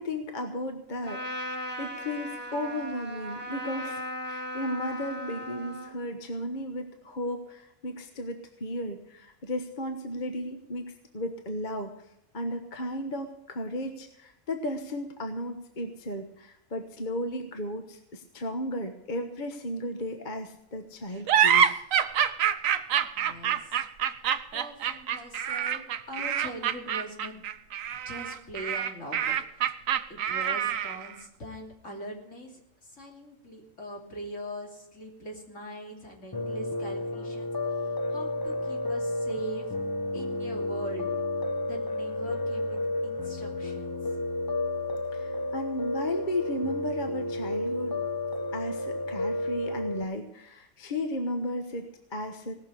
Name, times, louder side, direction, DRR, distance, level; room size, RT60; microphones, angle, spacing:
voice 1, 0.0-10.8 11.1-11.9 12.3-21.8 45.1-48.0 48.5-52.5, left 1 dB, 40° left, 6 dB, 1.3 m, -34 dB
Trumpet, 1.0-6.0, equal, 10° right, 1.9 m, -37 dB
sound 1, 21.3-31.1, right 9 dB, 90° right, 1.2 m, -26 dB
voice 2, 23.0-23.8 24.2-27.4 28.0-29.3 29.7-29.8 30.1-39.7 40.1-41.2 41.6-44.0, right 1 dB, 70° left, 0 dB, 3.4 m, -42 dB
Piano, 36.3-50.0, left 2 dB, 20° left, 0.8 m, -31 dB
18.5 x 6.7 x 8.3 m, 0.80 s
omnidirectional pair, 1.3 m